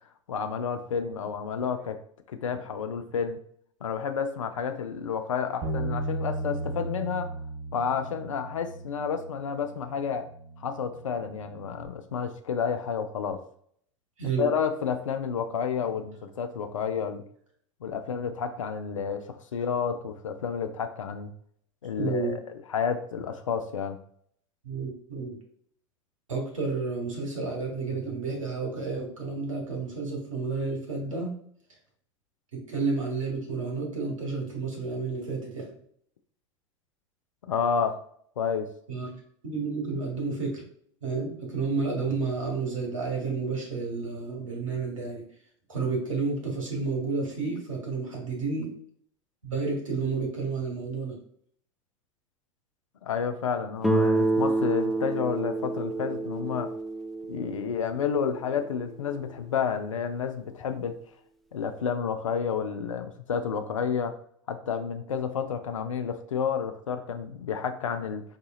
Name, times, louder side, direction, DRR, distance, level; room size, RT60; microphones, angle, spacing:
voice 1, 0.3-2.0 2.3-3.4 3.8-7.3 7.7-10.3 10.6-13.4 14.2-17.2 17.8-21.3 21.8-22.3 22.7-24.0 37.5-38.0 38.4-38.7 53.0-56.7 57.3-61.0 61.5-64.2 64.5-68.2, left 6 dB, 80° left, 8 dB, 0.4 m, -30 dB
Bass guitar, 5.6-11.9, right 2 dB, 40° right, 1.2 m, -36 dB
voice 2, 14.2-14.5 22.0-22.4 24.6-25.4 26.3-31.3 32.5-35.7 38.9-40.6 41.0-45.2 45.7-48.8 49.4-51.2, right 4 dB, 80° right, 0 dB, 1.2 m, -31 dB
Guitar, 53.8-58.6, right 2 dB, ahead, 0.4 m, -28 dB
4.9 x 2.7 x 2.3 m, 0.63 s
figure-of-eight pair, 85°, 16 cm